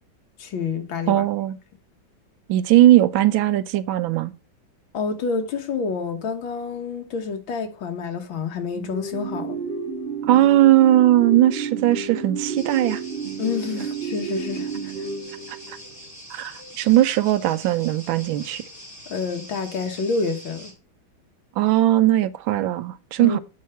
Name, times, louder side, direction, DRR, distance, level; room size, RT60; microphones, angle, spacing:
voice 1, 0.4-1.2 4.9-9.6 13.4-14.9 19.1-20.7 23.2-23.4, left 5 dB, 75° left, 2.0 m, -28 dB
voice 2, 1.1-1.6 2.5-4.3 10.2-13.0 15.5-15.8 16.3-18.6 21.6-23.4, right 14 dB, 80° right, 1.4 m, -19 dB
sound 1, 8.7-15.9, right 5 dB, 30° right, 2.2 m, -31 dB
sound 2, 12.6-20.7, equal, 10° left, 2.8 m, -43 dB
8.4 x 4.8 x 5.6 m
omnidirectional pair, 2.2 m